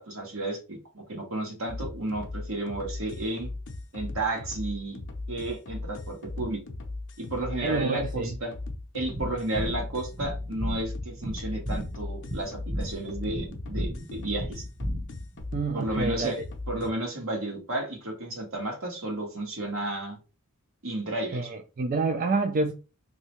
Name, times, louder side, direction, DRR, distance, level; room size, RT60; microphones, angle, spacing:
voice 1, 0.0-3.5 3.9-5.0 5.3-6.6 7.2-8.5 8.9-14.6 15.7-16.4 16.7-20.2 20.8-21.5, right 2 dB, 70° right, 1.3 m, -32 dB
sound 1, 1.7-16.9, left 2 dB, 60° left, 0.6 m, -38 dB
voice 2, 7.6-8.4 15.5-16.4 21.3-22.7, right 3 dB, 40° right, 0.4 m, -28 dB
sound 2, 9.1-15.4, equal, 15° right, 0.7 m, -35 dB
3.2 x 2.7 x 3.0 m
head